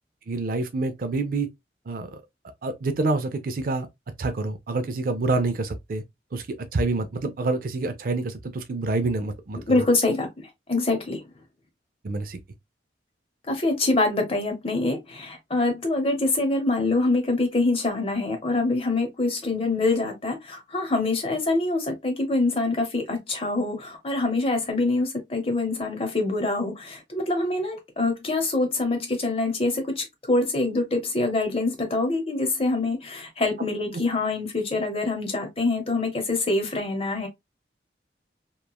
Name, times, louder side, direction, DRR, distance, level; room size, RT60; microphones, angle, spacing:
voice 1, 0.3-1.5 1.9-2.2 2.6-3.9 4.2-6.0 6.3-6.5 6.7-9.8 12.0-12.4, right 3 dB, 50° right, 0.4 m, -27 dB
voice 2, 9.7-10.3 10.7-11.2 13.5-37.3, left 2 dB, 35° left, 0.8 m, -25 dB
3.0 x 2.2 x 2.3 m
head